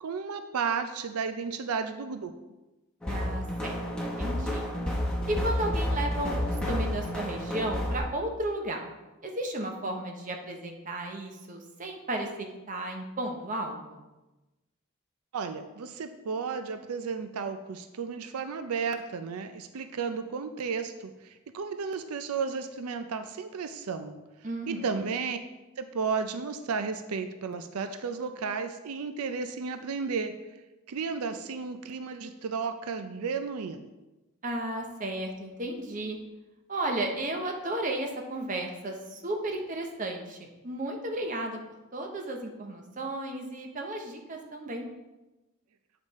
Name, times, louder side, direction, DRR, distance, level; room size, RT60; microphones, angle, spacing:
voice 1, 0.0-2.3 15.3-24.2 24.7-25.4 25.8-30.3 30.9-33.9, right 5 dB, 90° right, 8 dB, 0.5 m, -33 dB
sound 1, 3.0-8.0, left 1 dB, 5° left, 1.0 m, -30 dB
voice 2, 3.1-4.7 5.3-8.8 9.2-14.0 24.4-25.0 34.4-36.2 36.7-41.6 41.9-44.9, right 1 dB, 35° right, 2 dB, 0.9 m, -34 dB
8.1 x 5.1 x 4.1 m, 1.1 s
head